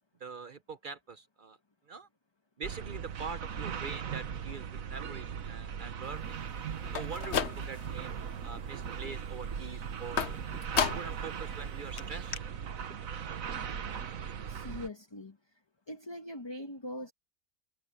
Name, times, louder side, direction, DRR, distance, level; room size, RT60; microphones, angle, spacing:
voice 1, 0.2-1.6 1.9-2.1 2.6-6.4 6.9-10.4 10.7-12.4, right 5 dB, 50° right, 0.6 m, -44 dB
sound 1, 2.6-14.9, right 7 dB, 85° right, 1.6 m, -39 dB
sound 2, 6.8-8.0 8.4-8.9 10.2-11.3 11.6-11.7 12.0-12.1 12.3-12.4, left 7 dB, 60° left, 1.2 m, -33 dB
voice 2, 14.5-15.4 15.9-17.1, left 1 dB, 20° left, 1.3 m, -41 dB
omnidirectional pair, 1.4 m